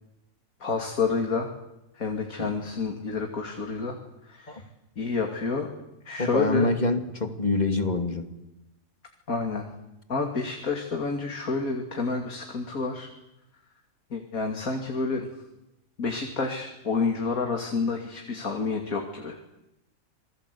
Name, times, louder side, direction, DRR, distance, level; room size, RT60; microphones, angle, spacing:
voice 1, 0.6-1.5 1.9-4.0 4.2-4.6 5.0-5.7 6.0-6.7 9.3-9.7 10.1-13.1 14.1-15.3 16.0-19.4, left 4 dB, 85° left, 3 dB, 3.0 m, -29 dB
voice 2, 6.2-8.3, left 2 dB, 30° left, 6 dB, 2.6 m, -26 dB
27.5 x 21.0 x 8.5 m, 0.92 s
omnidirectional pair, 1.5 m